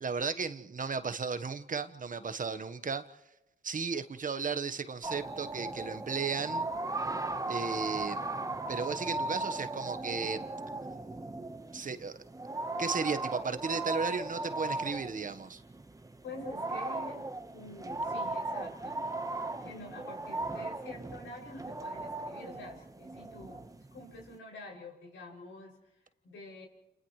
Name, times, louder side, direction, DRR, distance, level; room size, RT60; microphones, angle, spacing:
voice 1, 0.0-3.1 3.6-6.6 7.5-8.2 8.7-10.4 11.7-12.2 12.8-15.6, right 5 dB, 45° right, 10 dB, 1.3 m, -35 dB
sound 1, 5.0-24.4, right 2 dB, 15° right, 1.3 m, -37 dB
voice 2, 16.2-17.2 17.5-19.1 19.6-26.7, left 2 dB, 80° left, 0 dB, 6.9 m, -47 dB
30.0 x 29.5 x 3.3 m, 0.93 s
cardioid pair, 70°, 19 cm